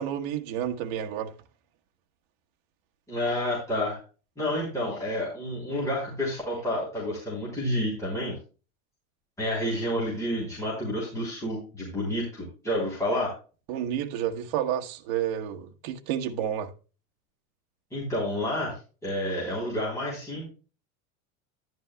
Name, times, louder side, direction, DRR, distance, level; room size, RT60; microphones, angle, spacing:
voice 1, 0.0-1.3 13.7-16.7, right 10 dB, 50° right, 1.3 m, -30 dB
voice 2, 3.1-4.0 4.4-8.3 9.4-13.3 17.9-20.5, left 1 dB, 5° left, 3.5 m, -29 dB
11.0 x 11.0 x 2.3 m
supercardioid pair, 175°, 42 cm